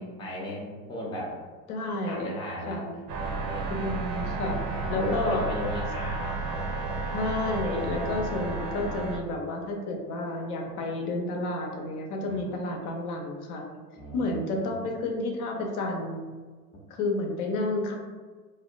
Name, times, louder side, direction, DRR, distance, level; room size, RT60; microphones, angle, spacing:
voice 1, 0.0-1.4 2.0-6.9 7.9-9.0 10.6-10.8 12.3-12.4 14.0-15.0, equal, 10° left, -4 dB, 0.4 m, -37 dB
voice 2, 1.7-2.3 2.7-3.0 3.7-4.6 4.9-5.4 7.1-13.6 14.1-16.3 16.9-18.0, left 2 dB, 65° left, 2 dB, 0.6 m, -31 dB
sound 1, 3.1-9.2, right 3 dB, 75° right, 0.7 m, -32 dB
2.7 x 2.1 x 2.4 m, 1.4 s
hypercardioid pair, 85°, 48 cm